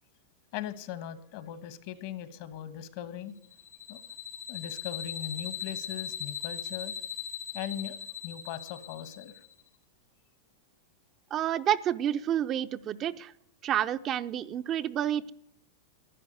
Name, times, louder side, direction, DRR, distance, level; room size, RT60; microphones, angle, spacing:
voice 1, 0.5-3.3 3.9-4.1 4.5-6.9 7.5-9.4, left 10 dB, 55° left, 13 dB, 1.4 m, -39 dB
sound 1, 3.5-9.5, left 8 dB, 90° left, 2.9 m, -39 dB
voice 2, 11.3-13.3 13.6-15.3, right 10 dB, 35° right, 11 dB, 0.6 m, -29 dB
12.0 x 10.0 x 9.4 m, 0.73 s
hypercardioid pair, 130°, 0 cm